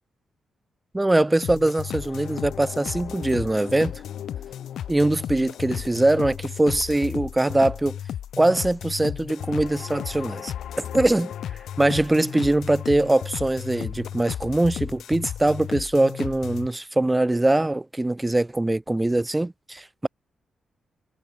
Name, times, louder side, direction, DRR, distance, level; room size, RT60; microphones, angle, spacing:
voice 1, 0.9-4.0 4.9-8.0 8.4-10.5 10.9-11.3 11.8-20.1, right 2 dB, 10° right, 1.9 m, -22 dB
sound 1, 1.4-16.7, left 10 dB, 80° left, 4.5 m, -34 dB
wide cardioid pair, 135°, 0 cm